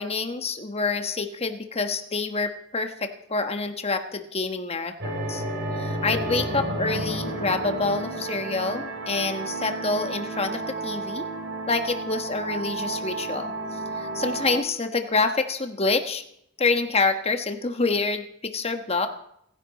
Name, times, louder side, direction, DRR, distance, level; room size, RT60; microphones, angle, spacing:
voice 1, 0.0-5.4 5.7-11.3 11.7-16.2 16.6-19.1, left 3 dB, 30° left, 7 dB, 1.3 m, -27 dB
sound 1, 5.0-14.6, right 2 dB, 55° right, 3.9 m, -31 dB
29.5 x 10.5 x 4.2 m, 0.73 s
head